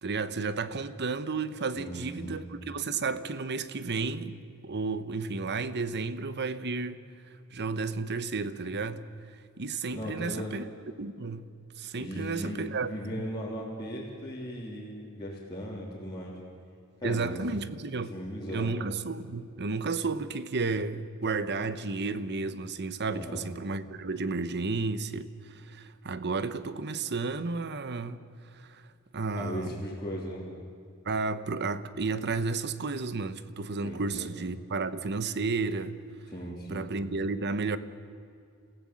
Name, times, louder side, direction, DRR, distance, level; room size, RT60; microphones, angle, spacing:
voice 1, 0.0-7.0 7.5-9.0 9.6-10.6 11.0-11.5 11.8-13.2 17.0-18.2 18.5-28.2 28.6-28.8 29.1-29.8 31.0-36.0 36.7-37.8, right 4 dB, 50° right, 1.0 m, -32 dB
voice 2, 1.8-2.5 9.9-10.6 12.0-16.4 17.0-17.4 18.1-18.8 23.1-23.4 29.3-30.5 33.8-34.3 36.3-36.9, equal, 20° left, 3.3 m, -37 dB
27.5 x 16.0 x 7.7 m
head